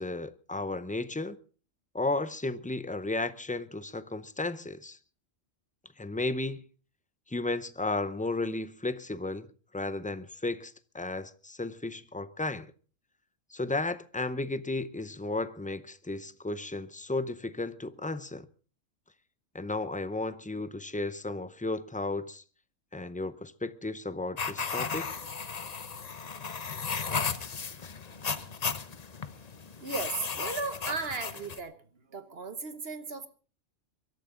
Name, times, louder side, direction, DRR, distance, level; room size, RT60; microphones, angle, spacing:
voice 1, 0.0-1.4 1.9-5.0 6.0-6.6 7.3-9.5 9.7-12.7 13.5-18.5 19.5-22.4 22.9-25.2, left 2 dB, 15° left, 0.3 m, -34 dB
sound 1, 24.4-31.6, left 5 dB, 35° left, 0.8 m, -35 dB
voice 2, 29.8-31.8 32.1-33.3, right 4 dB, 50° right, 1.3 m, -35 dB
23.5 x 13.0 x 3.8 m
omnidirectional pair, 1.3 m